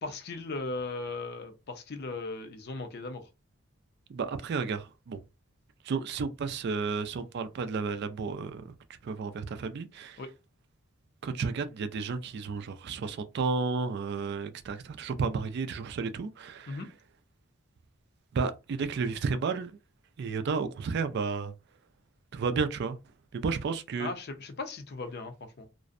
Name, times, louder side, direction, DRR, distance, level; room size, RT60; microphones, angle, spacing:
voice 1, 0.0-3.3 10.2-10.3 16.7-16.9 24.0-25.7, left 3 dB, 50° left, 0.5 m, -37 dB
voice 2, 4.1-5.2 5.8-8.7 9.0-10.2 11.2-16.8 18.3-19.8 20.2-21.5 22.3-23.0 23.3-24.1, right 4 dB, 50° right, 0.3 m, -32 dB
2.5 x 2.0 x 2.4 m
head